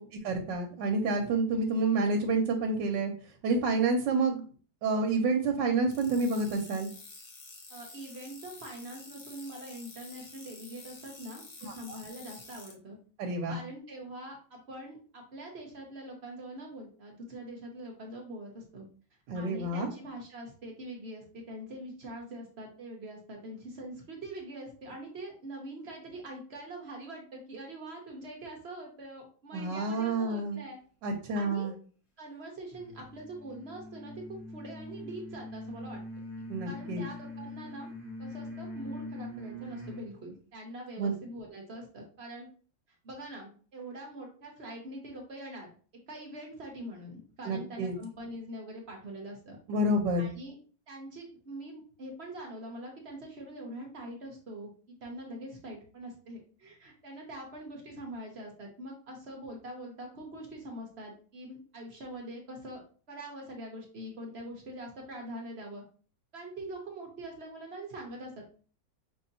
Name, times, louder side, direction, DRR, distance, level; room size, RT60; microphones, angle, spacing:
voice 1, 0.2-3.1 3.4-4.4 4.8-6.9 11.7-12.0 13.2-13.5 19.3-19.9 29.5-30.6 31.0-31.7 36.5-37.0 41.0-41.1 47.5-47.9 49.7-50.3, right 3 dB, 80° right, 3 dB, 1.3 m, -28 dB
sound 1, 5.9-12.7, left 3 dB, 60° left, 1.4 m, -49 dB
voice 2, 7.7-13.0 13.5-18.8 19.3-30.8 31.3-31.7 32.2-36.0 36.6-37.9 38.2-42.5 43.0-45.7 46.1-49.6 50.2-50.5 50.9-54.7 55.0-62.8 63.1-65.8 66.3-68.6, right 1 dB, 50° right, 0 dB, 0.8 m, -43 dB
sound 2, 32.7-40.1, left 1 dB, 25° left, 0.5 m, -43 dB
5.3 x 2.7 x 2.6 m, 0.40 s
omnidirectional pair, 2.0 m